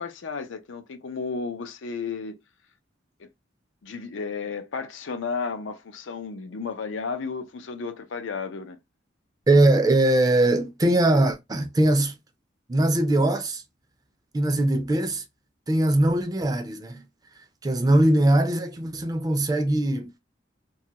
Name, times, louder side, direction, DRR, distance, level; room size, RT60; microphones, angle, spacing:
voice 1, 0.0-2.4 3.2-3.3 3.8-8.8, left 5 dB, 85° left, 0.5 m, -33 dB
voice 2, 9.5-12.2 12.7-13.6 14.3-15.2 15.7-17.0 17.6-20.1, right 1 dB, 20° right, 0.4 m, -21 dB
2.9 x 2.3 x 2.8 m
head